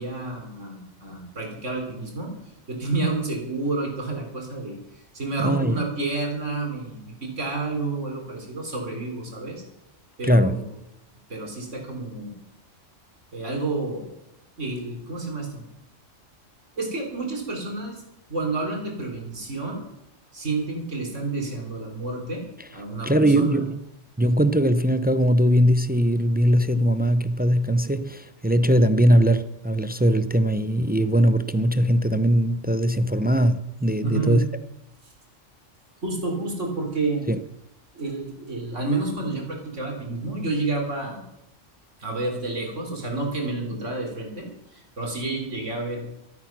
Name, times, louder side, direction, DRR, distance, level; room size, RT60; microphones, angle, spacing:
voice 1, 0.0-2.3 2.7-4.8 5.1-9.6 10.2-10.7 11.3-12.3 13.3-14.1 14.6-15.6 16.8-18.0 18.3-19.8 20.3-22.4 22.7-23.6 34.0-34.4 36.0-37.3 37.9-41.2 42.0-46.1, right 3 dB, 75° right, 4.1 m, -29 dB
voice 2, 5.4-5.8 10.2-10.6 23.0-23.7 24.2-34.5 37.3-37.4, equal, 15° right, 0.3 m, -20 dB
13.5 x 13.0 x 6.1 m
omnidirectional pair, 1.3 m